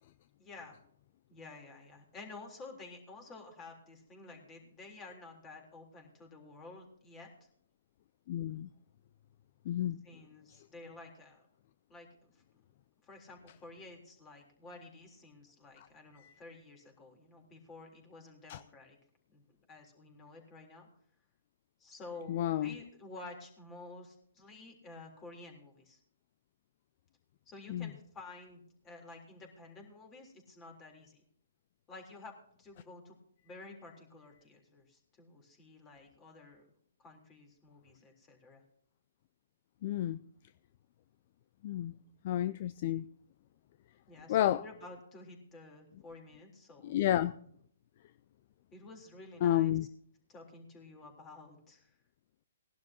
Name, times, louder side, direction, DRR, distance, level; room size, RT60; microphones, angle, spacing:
voice 1, 0.4-0.8 1.3-7.5 10.0-11.4 11.9-12.4 13.0-19.0 19.3-20.9 21.8-26.0 27.5-31.2 31.9-32.3 32.6-33.2 33.4-36.6 37.0-38.6 44.1-46.9 48.7-49.7 50.3-52.0, left 3 dB, 20° left, 3.6 m, -51 dB
voice 2, 8.3-8.7 9.7-10.0 16.2-16.3 18.5-18.6 22.3-22.7 27.7-27.9 39.8-40.2 41.6-41.9 42.2-43.1 44.3-44.6 46.8-47.4 49.4-49.9, left 12 dB, 45° left, 0.4 m, -31 dB
20.0 x 11.5 x 2.9 m
hypercardioid pair, 135°, 0 cm